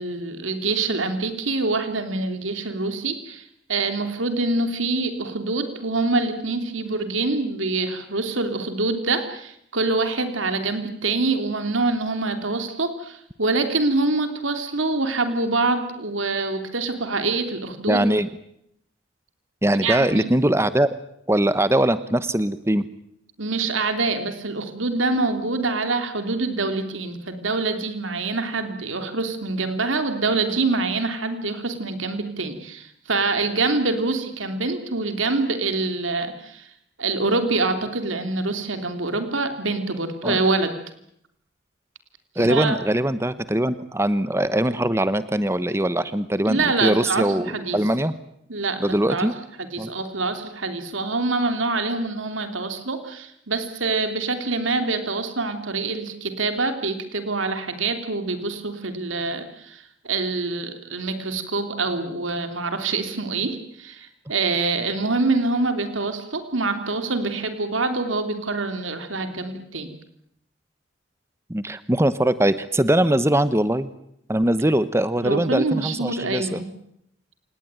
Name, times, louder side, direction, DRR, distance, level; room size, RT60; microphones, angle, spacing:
voice 1, 0.0-3.4 3.7-18.0 19.8-20.3 23.4-36.7 37.0-40.7 42.4-42.8 46.4-47.8 48.5-49.3 49.6-69.9 75.2-76.7, right 3 dB, 85° right, 7 dB, 3.1 m, -25 dB
voice 2, 17.9-18.3 19.6-21.0 21.3-22.9 40.2-40.4 42.4-48.1 48.8-49.3 49.8-49.9 71.5-73.9 74.3-76.6, right 1 dB, 15° right, 14 dB, 1.0 m, -21 dB
27.5 x 19.0 x 9.0 m, 0.75 s
head